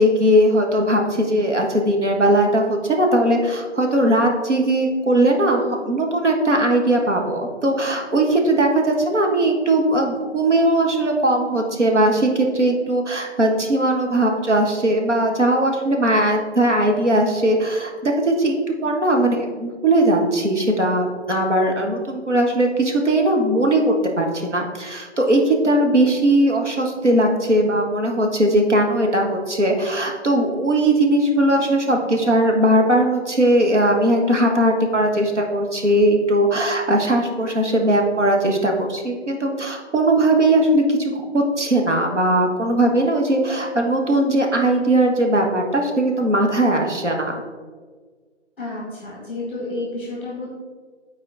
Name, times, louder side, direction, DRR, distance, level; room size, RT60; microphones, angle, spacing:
voice 1, 0.0-47.3, right 1 dB, 80° right, 1 dB, 1.4 m, -19 dB
voice 2, 48.6-50.6, left 2 dB, 10° left, -4 dB, 1.0 m, -30 dB
8.6 x 4.3 x 3.9 m, 1.5 s
figure-of-eight pair, 155°, 35 cm